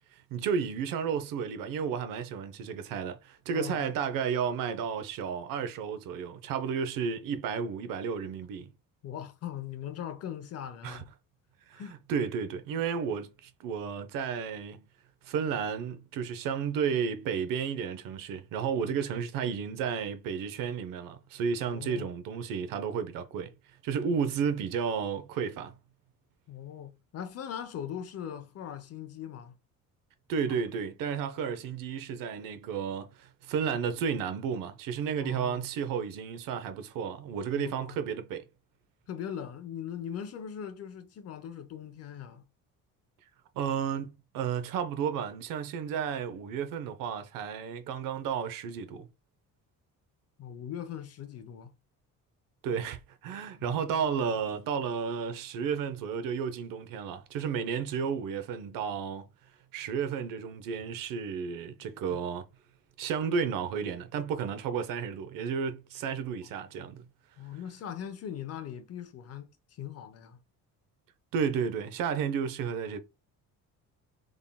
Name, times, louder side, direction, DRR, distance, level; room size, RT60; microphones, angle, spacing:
voice 1, 0.1-8.7 10.8-11.0 11.7-11.8 12.1-14.8 15.2-23.5 23.8-25.7 30.3-38.4 43.6-49.1 52.6-59.3 59.7-62.5 63.0-67.1 71.3-73.0, right 7 dB, 85° right, 0.7 m, -32 dB
voice 2, 3.5-3.9 9.0-11.1 11.7-12.0 18.8-19.0 21.6-22.1 26.5-29.5 35.2-35.7 37.5-38.0 39.1-42.4 50.4-51.7 53.6-54.1 62.1-62.2 67.4-70.4, left 9 dB, 50° left, 0.8 m, -40 dB
3.7 x 3.6 x 2.2 m
cardioid pair, 165°, 32 cm